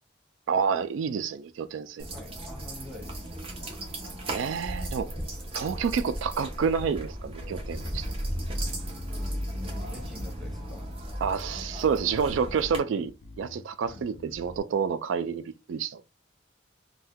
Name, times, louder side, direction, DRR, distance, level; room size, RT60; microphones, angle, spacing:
voice 1, 0.5-2.1 4.3-5.1 5.5-8.1 11.2-16.0, right 6 dB, 80° right, 0.3 m, -29 dB
sound 1, 2.0-12.8, equal, 30° right, 0.8 m, -35 dB
voice 2, 2.1-3.5 9.6-10.9 13.8-14.1, left 1 dB, ahead, 0.6 m, -46 dB
Bass guitar, 7.4-11.0 11.6-12.2 12.5-14.6, left 3 dB, 75° left, 0.4 m, -48 dB
2.6 x 2.2 x 3.5 m
head